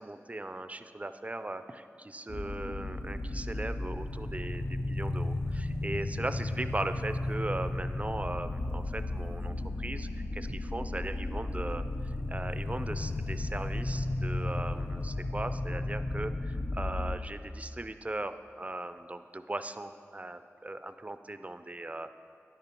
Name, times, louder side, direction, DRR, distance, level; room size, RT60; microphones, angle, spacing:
voice 1, 0.0-22.1, right 2 dB, 25° right, 10 dB, 0.4 m, -38 dB
sound 1, 2.3-17.2, left 2 dB, 50° left, 0.6 m, -34 dB
9.9 x 6.8 x 4.4 m, 2.5 s
wide cardioid pair, 50°, 5 cm